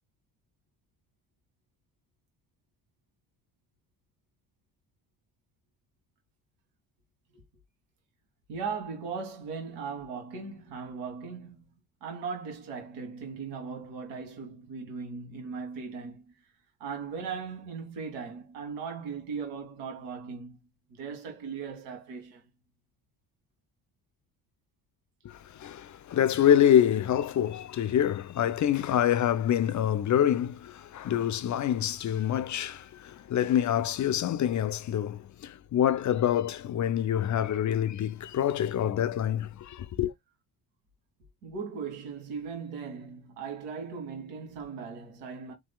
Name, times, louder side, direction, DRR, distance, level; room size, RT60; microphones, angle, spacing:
voice 1, 8.5-11.7 12.0-16.3 16.8-20.6 20.9-22.4 41.4-45.5, right 5 dB, 90° right, 1.8 m, -38 dB
voice 2, 25.2-40.1, left 10 dB, 40° left, 0.5 m, -26 dB
3.5 x 3.3 x 2.2 m
supercardioid pair, 60°, 49 cm